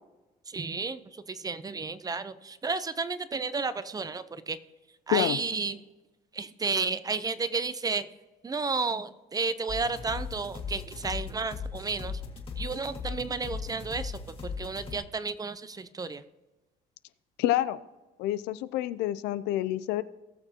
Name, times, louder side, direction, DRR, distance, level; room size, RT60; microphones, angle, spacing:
voice 1, 0.5-4.6 5.1-5.8 6.3-8.1 8.4-12.2 12.6-16.2, right 4 dB, 20° right, 14 dB, 0.6 m, -32 dB
sound 1, 9.7-15.0, left 5 dB, 35° left, 2.0 m, -38 dB
voice 2, 17.4-17.8 18.2-20.0, left 14 dB, 90° left, 15 dB, 0.5 m, -28 dB
19.0 x 6.6 x 2.9 m, 1.1 s
cardioid pair, 110°, 17 cm